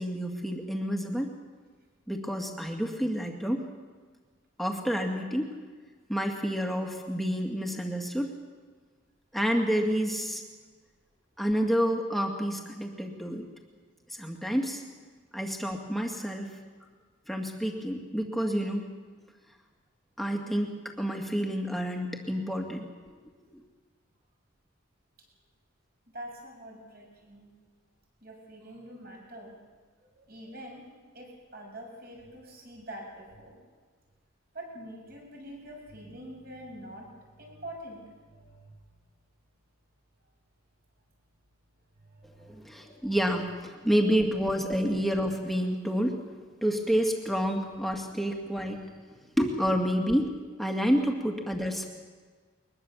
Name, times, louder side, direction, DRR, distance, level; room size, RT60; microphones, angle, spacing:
voice 1, 0.0-1.3 2.1-3.6 4.6-5.5 6.1-8.3 9.3-10.4 11.4-13.5 14.1-14.8 15.3-16.5 17.3-18.8 20.2-23.1 42.4-46.2 46.6-48.8 49.4-51.9, equal, ahead, 1 dB, 2.1 m, -29 dB
voice 2, 26.1-27.5 28.2-29.6 30.0-30.9 31.1-33.6 34.5-37.1 37.4-38.7 42.1-43.2, right 1 dB, 50° right, 0 dB, 7.3 m, -45 dB
22.5 x 21.0 x 7.3 m, 1.5 s
head